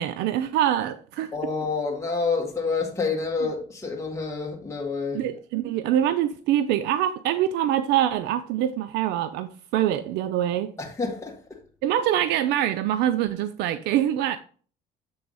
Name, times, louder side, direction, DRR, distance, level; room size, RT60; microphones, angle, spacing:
voice 1, 0.0-1.3 5.1-10.7 11.8-14.4, right 11 dB, 85° right, 0.5 m, -24 dB
voice 2, 1.3-5.2 10.8-11.6, left 4 dB, 15° left, 1.6 m, -28 dB
7.7 x 3.4 x 5.4 m
cardioid pair, 110°, 17 cm